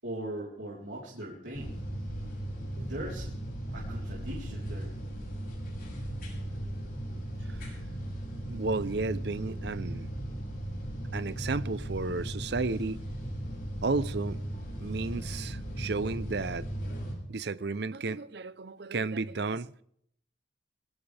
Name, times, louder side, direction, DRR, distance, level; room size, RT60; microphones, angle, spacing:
voice 1, 0.0-1.8 2.8-3.3 3.7-4.9, right 1 dB, 85° right, 4.0 m, -39 dB
sound 1, 1.5-17.1, right 1 dB, 50° left, 6.9 m, -37 dB
voice 2, 8.3-10.1 11.1-13.0 13.8-14.4 14.8-16.7 17.3-19.7, right 3 dB, 60° right, 0.7 m, -33 dB
22.5 x 18.5 x 3.4 m
head